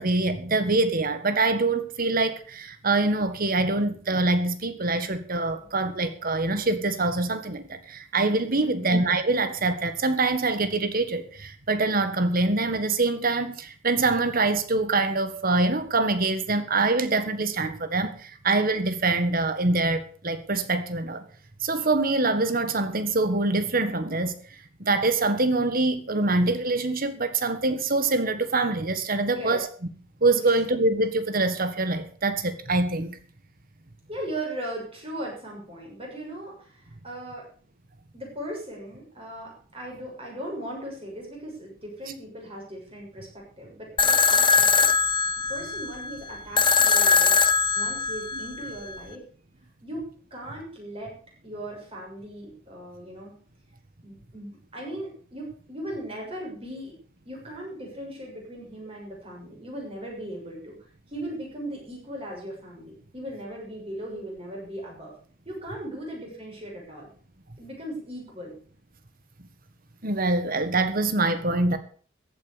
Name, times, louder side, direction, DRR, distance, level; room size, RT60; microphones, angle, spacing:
voice 1, 0.0-21.2 21.6-24.3 24.8-29.7 30.2-33.2 70.0-71.8, right 2 dB, 45° right, 1.7 m, -24 dB
voice 2, 8.6-8.9 29.3-29.6 30.5-30.6 34.1-37.5 38.1-45.1 45.5-47.4 47.7-49.2 49.8-51.1 51.4-53.3 54.0-57.0 57.2-60.8 61.1-65.1 65.4-67.1 67.6-68.5, right 1 dB, 30° right, 6.8 m, -38 dB
sound 1, 44.0-49.0, left 5 dB, 25° left, 0.8 m, -21 dB
14.5 x 8.9 x 6.7 m
head